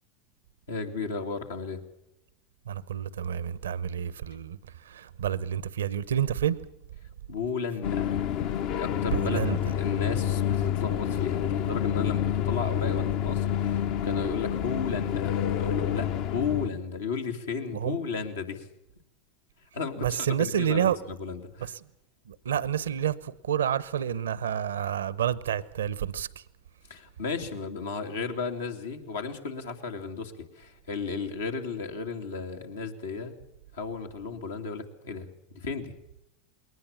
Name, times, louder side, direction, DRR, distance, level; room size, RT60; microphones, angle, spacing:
voice 1, 0.7-1.8 7.3-18.7 19.7-21.7 26.9-33.4 33.7-35.9, left 4 dB, 85° left, 2.7 m, -34 dB
voice 2, 2.7-4.6 4.9-6.6 9.1-9.6 17.8-18.0 20.0-21.0 22.3-23.2 23.5-26.3, right 9 dB, 85° right, 0.8 m, -28 dB
sound 1, 7.8-16.7, left 10 dB, 55° left, 0.9 m, -28 dB
21.5 x 19.0 x 7.2 m
hypercardioid pair, 90°, 0 cm